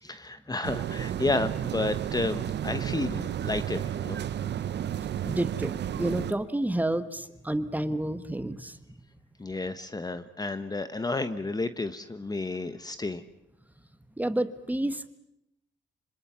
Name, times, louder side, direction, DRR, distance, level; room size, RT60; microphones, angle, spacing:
voice 1, 0.0-4.2 9.4-13.2, left 2 dB, 20° left, 11 dB, 1.2 m, -31 dB
sound 1, 0.6-6.3, right 10 dB, 60° right, 1.0 m, -32 dB
voice 2, 5.2-8.8 14.2-15.1, right 1 dB, 10° right, 12 dB, 1.5 m, -30 dB
26.0 x 25.5 x 7.1 m, 0.80 s
cardioid pair, 90°, 20 cm